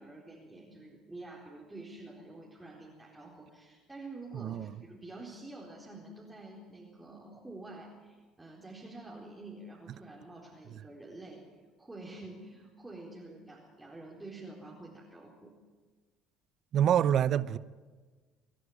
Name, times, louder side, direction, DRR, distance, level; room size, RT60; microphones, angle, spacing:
voice 1, 0.0-11.4 11.8-15.5, right 2 dB, 10° right, 4.2 m, -48 dB
voice 2, 4.3-4.7 16.7-17.6, right 9 dB, 55° right, 0.8 m, -26 dB
25.0 x 11.5 x 9.9 m
supercardioid pair, 85°, 0 cm